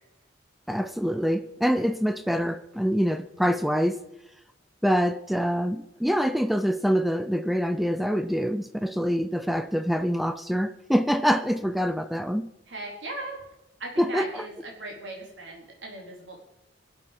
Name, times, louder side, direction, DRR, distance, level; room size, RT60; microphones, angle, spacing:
voice 1, 0.7-4.0 4.8-12.5 14.0-14.3, equal, ahead, 0.4 m, -25 dB
voice 2, 12.7-13.4 13.8-16.4, right 2 dB, 75° right, 4.2 m, -38 dB
22.0 x 8.0 x 5.4 m
head